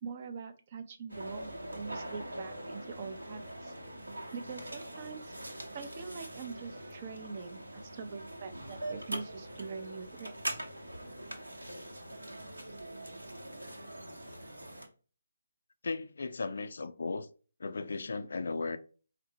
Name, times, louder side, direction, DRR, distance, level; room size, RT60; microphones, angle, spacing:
voice 1, 0.0-3.7 4.3-5.3 5.7-10.6, right 5 dB, 35° right, 0.4 m, -43 dB
sound 1, 1.1-14.9, right 1 dB, 80° right, 0.8 m, -43 dB
voice 2, 15.8-17.3 17.6-18.8, left 3 dB, 60° left, 0.3 m, -36 dB
4.1 x 2.0 x 2.6 m
figure-of-eight pair, 145°, 0 cm